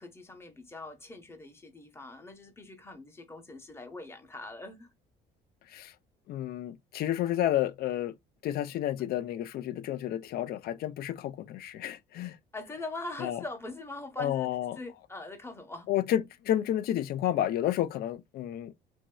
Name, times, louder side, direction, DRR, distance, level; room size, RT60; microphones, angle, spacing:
voice 1, 0.0-4.9 12.5-15.9, left 2 dB, 15° left, 0.8 m, -42 dB
voice 2, 6.3-8.1 8.4-12.4 13.2-13.4 14.2-14.8 15.9-18.7, left 12 dB, 65° left, 0.5 m, -31 dB
3.1 x 2.6 x 2.2 m
cardioid pair, 110°, 17 cm